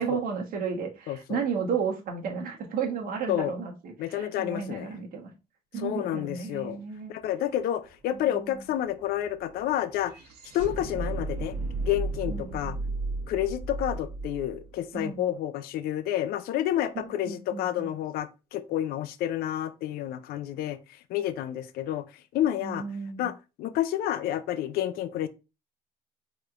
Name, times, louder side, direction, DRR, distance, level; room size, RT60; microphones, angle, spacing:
voice 1, 0.0-5.3 5.7-7.1 8.1-8.5 12.3-12.7 14.9-15.3 16.9-17.9 22.6-23.3, right 6 dB, 60° right, 1.2 m, -33 dB
voice 2, 1.1-1.4 3.3-3.6 4.0-4.9 5.8-6.8 7.1-10.1 10.5-11.5 11.8-12.8 13.3-22.8 23.2-23.3 23.6-25.3, left 12 dB, 70° left, 0.4 m, -30 dB
sound 1, 7.2-7.3 7.5-15.7, right 3 dB, 85° right, 1.3 m, -35 dB
4.7 x 3.1 x 2.4 m
cardioid pair, 120°, 16 cm